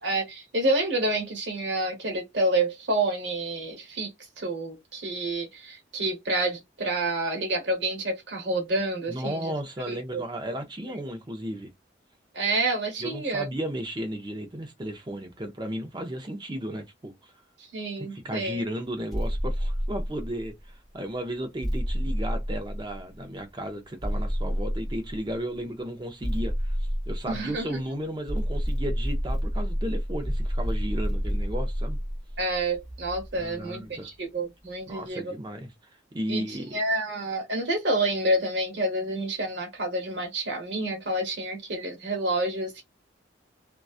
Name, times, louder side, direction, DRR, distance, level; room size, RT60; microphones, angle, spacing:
voice 1, 0.0-4.1 4.4-9.5 9.9-10.6 12.3-13.5 17.6-18.6 27.3-27.8 32.4-35.3 36.3-42.8, right 2 dB, 70° right, 1.0 m, -28 dB
voice 2, 9.1-11.7 13.0-17.3 18.0-32.0 33.4-34.1 34.9-35.7 36.1-36.7, equal, 25° right, 0.5 m, -34 dB
sound 1, 19.1-20.6 21.6-23.2 24.0-25.4 26.2-27.8 28.3-33.5, equal, ahead, 0.9 m, -29 dB
2.5 x 2.2 x 2.3 m
head